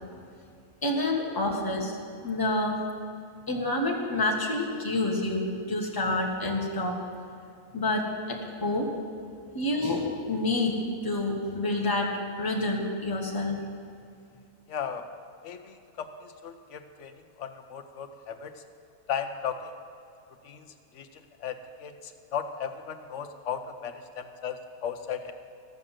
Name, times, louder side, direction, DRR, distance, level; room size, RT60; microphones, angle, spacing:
voice 1, 0.8-1.9 2.2-2.8 3.5-7.0 7.7-8.9 9.5-10.8 11.0-12.1 12.4-13.6, left 2 dB, 15° left, -1 dB, 1.2 m, -28 dB
voice 2, 14.7-15.0 15.4-17.1 17.4-18.5 19.1-19.8 20.4-20.7 20.9-21.1 21.4-21.5 21.8-25.3, left 7 dB, 65° left, 7 dB, 0.9 m, -36 dB
13.5 x 6.4 x 7.3 m, 2.5 s
omnidirectional pair, 1.5 m